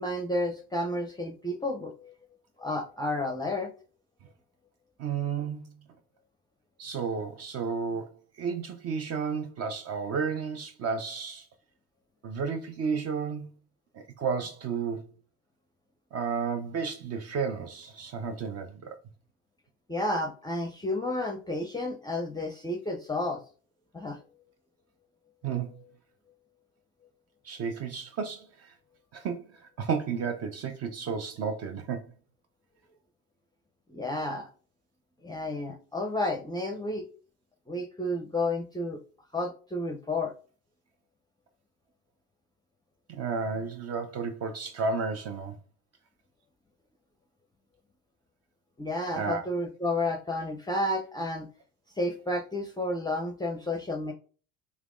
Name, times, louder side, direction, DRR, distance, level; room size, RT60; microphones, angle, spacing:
voice 1, 0.0-2.1 2.6-3.7 19.9-23.4 23.9-24.2 33.9-34.5 35.2-37.0 37.7-39.0 39.3-40.3 48.8-51.5 52.0-54.1, left 1 dB, 10° left, 0.5 m, -31 dB
voice 2, 5.0-5.7 6.8-11.5 12.2-13.5 13.9-15.1 16.1-19.0 25.4-25.7 27.4-28.7 29.1-32.1 43.1-45.6 49.1-49.4, right 5 dB, 40° right, 0.5 m, -32 dB
3.3 x 3.0 x 2.4 m
hypercardioid pair, 65°, 39 cm